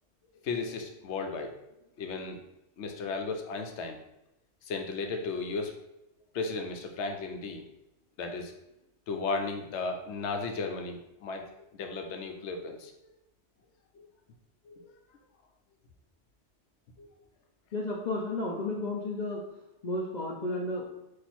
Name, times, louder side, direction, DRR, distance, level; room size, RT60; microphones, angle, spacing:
voice 1, 0.4-1.5 2.0-2.4 2.8-4.0 4.7-5.7 6.3-7.6 8.2-8.5 9.1-12.9 13.9-14.1 14.7-14.9 17.0-17.1, left 4 dB, 70° left, 4 dB, 0.9 m, -35 dB
voice 2, 17.7-19.4 19.8-20.9, left 2 dB, 50° left, -3 dB, 0.5 m, -32 dB
4.4 x 2.5 x 4.2 m, 0.88 s
omnidirectional pair, 1.3 m